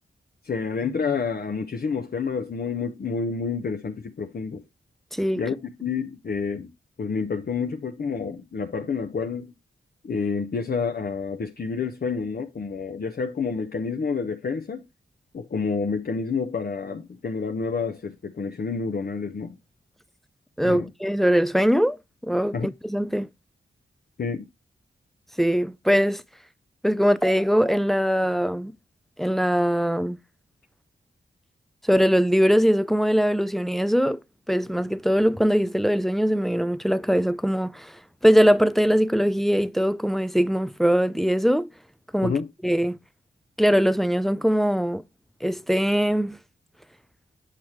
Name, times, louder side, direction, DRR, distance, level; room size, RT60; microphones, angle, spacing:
voice 1, 0.4-4.6 5.4-6.7 7.0-9.5 10.0-14.8 15.3-19.6 20.6-20.9 22.5-22.7 24.2-24.5 42.2-42.5, left 5 dB, 50° left, 0.7 m, -29 dB
voice 2, 5.1-5.4 20.6-23.3 25.4-26.2 26.8-28.7 29.2-30.2 31.8-34.2 34.5-41.7 42.1-42.4 42.6-43.0 43.6-45.0 45.4-46.4, equal, ahead, 0.4 m, -21 dB
6.3 x 5.8 x 3.0 m
cardioid pair, 50°, 21 cm